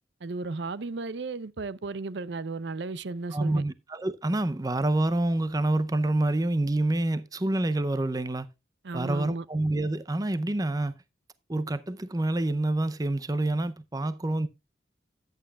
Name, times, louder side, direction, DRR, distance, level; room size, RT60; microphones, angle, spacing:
voice 1, 0.2-3.6 8.8-9.4, right 3 dB, 65° right, 0.6 m, -34 dB
voice 2, 3.3-8.5 8.9-10.9 11.5-14.5, right 2 dB, 20° right, 0.5 m, -27 dB
14.0 x 9.2 x 2.3 m
head